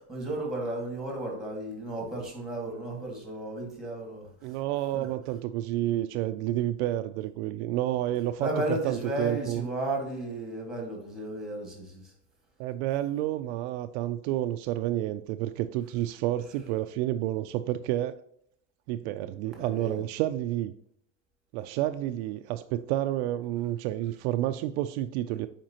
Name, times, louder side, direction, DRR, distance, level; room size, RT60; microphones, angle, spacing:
voice 1, 0.1-4.3 4.9-5.1 8.4-12.0 19.6-20.0, right 1 dB, ahead, 0 dB, 1.9 m, -33 dB
voice 2, 4.4-9.7 12.6-18.2 18.9-20.7 21.5-25.5, right 13 dB, 70° right, 10 dB, 0.5 m, -30 dB
7.5 x 5.2 x 2.9 m, 0.70 s
cardioid pair, 155°, 35 cm